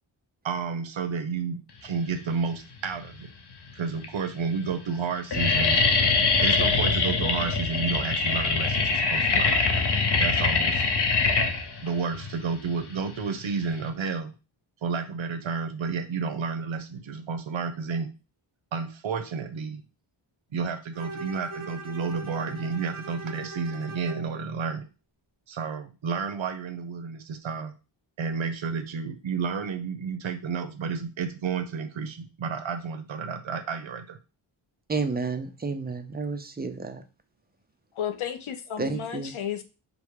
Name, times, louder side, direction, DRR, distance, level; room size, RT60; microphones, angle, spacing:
voice 1, 0.4-3.3 3.7-5.8 6.4-9.5 10.2-10.8 11.8-14.3 14.8-18.1 18.7-19.8 20.5-24.9 25.5-27.7 28.2-34.2, right 5 dB, 75° right, 0.8 m, -31 dB
sound 1, 2.7-3.3 4.0-4.1 4.3-4.7 5.0-13.9, left 4 dB, 55° left, 0.9 m, -24 dB
Bowed string instrument, 20.9-24.3, right 2 dB, 45° right, 0.9 m, -40 dB
voice 2, 34.9-37.0 38.8-39.3, right 4 dB, 20° right, 0.5 m, -31 dB
voice 3, 38.0-39.6, left 9 dB, 85° left, 0.8 m, -33 dB
5.2 x 2.2 x 4.7 m
wide cardioid pair, 130°, 47 cm